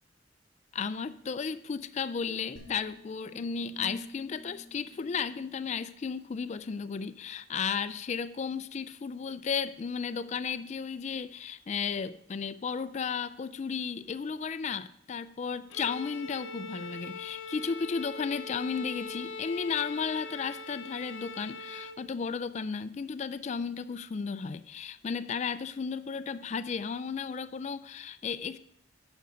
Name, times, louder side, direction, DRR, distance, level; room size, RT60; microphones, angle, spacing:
voice 1, 0.7-28.6, left 6 dB, 35° left, 14 dB, 0.3 m, -34 dB
sound 1, 2.6-5.9, left 1 dB, 70° right, 1.8 m, -50 dB
Bowed string instrument, 15.7-22.1, left 3 dB, 75° left, 0.6 m, -42 dB
9.3 x 6.1 x 5.1 m, 0.74 s
head